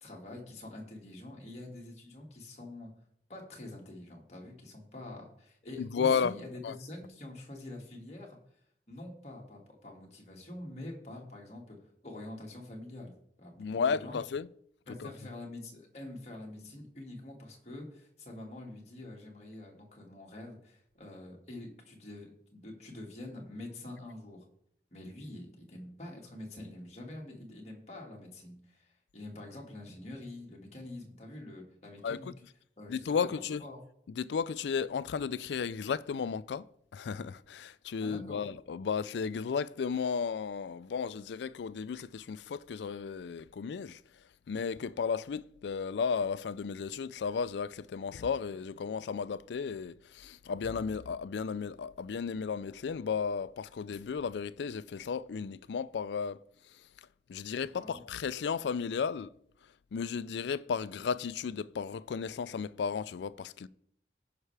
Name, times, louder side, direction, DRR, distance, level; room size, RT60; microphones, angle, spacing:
voice 1, 0.0-2.9 3.3-8.4 8.9-11.8 12.0-13.1 13.4-14.2 14.9-24.5 24.9-32.3 32.8-33.8 38.0-38.4 57.8-58.0, left 1 dB, 40° left, 2.0 m, -46 dB
voice 2, 5.8-6.3 6.6-6.7 13.6-14.5 15.0-15.1 32.0-32.3 32.9-33.6 34.2-36.6 36.9-44.0 44.5-56.4 57.3-59.3 59.9-63.7, left 6 dB, 80° left, 0.4 m, -34 dB
16.0 x 5.6 x 3.3 m
head